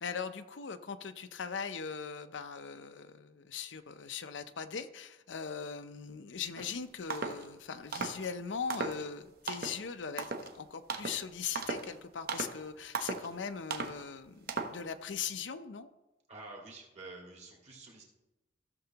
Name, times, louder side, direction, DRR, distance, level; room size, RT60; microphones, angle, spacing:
voice 1, 0.0-15.9, left 6 dB, 80° left, 10 dB, 0.6 m, -40 dB
sound 1, 6.6-6.7 7.1-7.4 7.9-8.3 8.7-9.1 9.5-9.8 10.2-10.5 10.9-11.2 11.6-11.9 12.3-12.6 12.9-13.3 13.7-14.0 14.5-14.8, right 4 dB, 55° right, 0.9 m, -37 dB
voice 2, 16.3-18.0, right 2 dB, 40° right, -1 dB, 2.1 m, -49 dB
15.0 x 6.8 x 2.9 m, 1.0 s
head